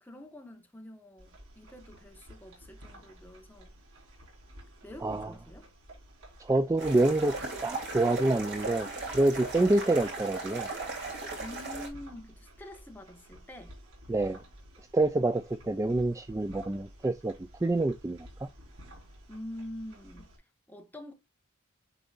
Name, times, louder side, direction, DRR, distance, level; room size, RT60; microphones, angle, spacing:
voice 1, 0.0-3.8 4.8-5.7 11.4-13.7 19.3-20.3 20.7-21.1, left 1 dB, 10° left, 1.2 m, -46 dB
sound 1, 1.2-20.4, equal, 85° right, 4.0 m, -52 dB
voice 2, 6.4-8.9 9.1-10.7 14.1-14.4 14.9-17.3 17.6-18.5, right 2 dB, 15° right, 0.3 m, -27 dB
sound 2, 6.8-11.9, right 3 dB, 55° right, 2.9 m, -37 dB
10.0 x 4.1 x 2.4 m
head